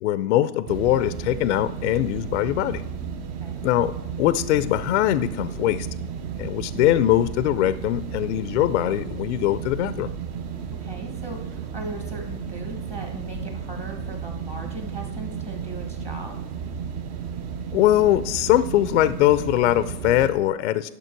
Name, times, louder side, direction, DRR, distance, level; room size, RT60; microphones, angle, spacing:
voice 1, 0.0-2.8 3.6-3.9 4.2-5.9 6.4-10.1 17.7-20.9, left 13 dB, 50° left, 14 dB, 0.5 m, -21 dB
sound 1, 0.7-20.3, right 7 dB, 35° right, 0.8 m, -33 dB
voice 2, 10.7-16.4, right 2 dB, 15° right, 3 dB, 1.3 m, -38 dB
11.0 x 6.6 x 4.5 m, 0.83 s
hypercardioid pair, 140°, 46 cm